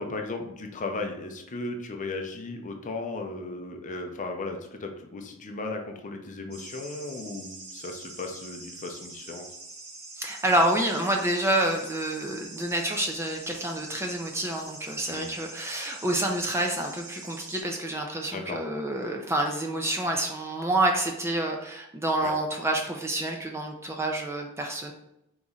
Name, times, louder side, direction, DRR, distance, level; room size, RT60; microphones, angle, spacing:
voice 1, 0.0-9.4 15.1-15.3 18.3-18.6 22.2-22.3, left 3 dB, 35° left, 4 dB, 0.5 m, -36 dB
sound 1, 6.5-17.6, right 2 dB, 50° right, 1.1 m, -44 dB
voice 2, 10.2-24.9, right 1 dB, 10° right, 2 dB, 0.4 m, -28 dB
4.0 x 3.0 x 3.6 m, 0.82 s
head